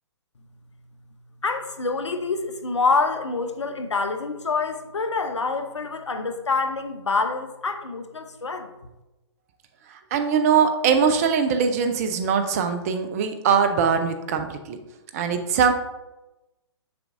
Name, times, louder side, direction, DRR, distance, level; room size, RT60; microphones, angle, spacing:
voice 1, 1.4-8.7, left 4 dB, 80° left, 7 dB, 0.8 m, -26 dB
voice 2, 9.9-14.8 15.1-15.7, right 6 dB, 35° right, 7 dB, 0.7 m, -22 dB
6.9 x 5.9 x 2.6 m, 1.0 s
figure-of-eight pair, 135°, 15 cm